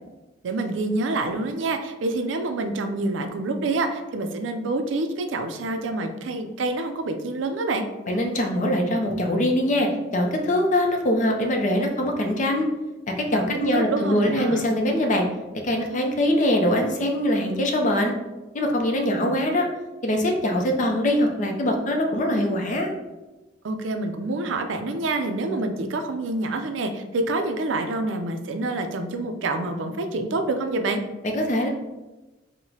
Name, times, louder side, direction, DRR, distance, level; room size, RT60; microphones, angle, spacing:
voice 1, 0.4-7.9 13.7-14.7 23.6-31.0, right 2 dB, 80° right, 6 dB, 0.4 m, -27 dB
voice 2, 8.1-12.7 13.2-15.3 15.6-18.1 18.5-19.7 20.0-22.9 31.2-31.7, left 1 dB, 45° left, 2 dB, 0.5 m, -23 dB
4.7 x 2.1 x 2.8 m, 1.1 s
head